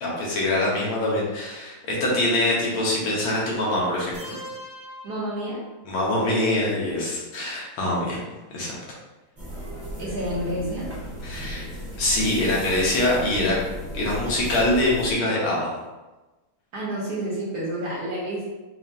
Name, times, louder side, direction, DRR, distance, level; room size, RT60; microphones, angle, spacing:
voice 1, 0.0-4.4 5.9-8.2 8.5-8.8 11.2-11.6 12.0-13.6 13.9-15.8, left 1 dB, 80° left, -4 dB, 1.9 m, -24 dB
sound 1, 4.1-6.1, equal, 85° right, 1.6 m, -42 dB
voice 2, 5.0-5.6 10.0-10.9 16.7-18.5, right 1 dB, 55° right, -6 dB, 1.4 m, -29 dB
sound 2, 9.4-15.1, equal, 15° right, 0.5 m, -35 dB
5.4 x 2.4 x 2.7 m, 1.1 s
omnidirectional pair, 2.3 m